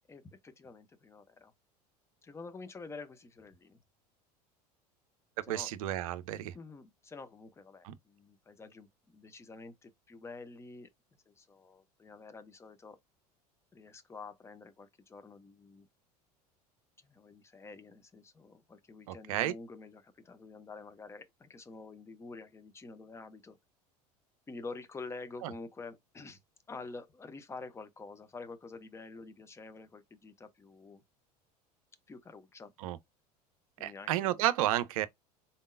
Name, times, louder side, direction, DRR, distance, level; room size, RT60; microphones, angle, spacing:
voice 1, 0.1-1.5 2.2-3.8 5.4-5.9 6.5-10.9 11.3-13.0 13.7-15.9 17.1-23.6 24.5-26.4 26.7-31.0 32.1-32.7 33.8-34.4, left 3 dB, 15° left, 0.6 m, -48 dB
voice 2, 5.5-6.5 7.8-7.9 19.1-19.5 25.4-25.5 32.8-33.0 33.8-35.1, right 14 dB, 60° right, 0.5 m, -31 dB
4.0 x 3.6 x 2.5 m
figure-of-eight pair, 75°, 21 cm